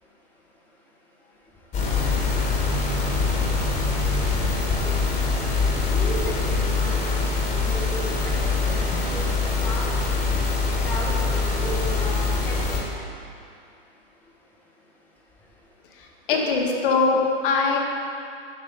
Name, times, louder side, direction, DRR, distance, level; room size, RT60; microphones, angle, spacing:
sound 1, 1.7-12.8, left 4 dB, 20° left, 1.7 m, -24 dB
voice 1, 5.9-7.3 7.6-9.9 10.8-12.8 16.3-16.4, equal, 5° left, -5 dB, 1.2 m, -35 dB
voice 2, 16.3-17.8, left 4 dB, 60° left, 0 dB, 1.3 m, -21 dB
7.4 x 5.8 x 5.2 m, 2.5 s
hypercardioid pair, 115°, 30 cm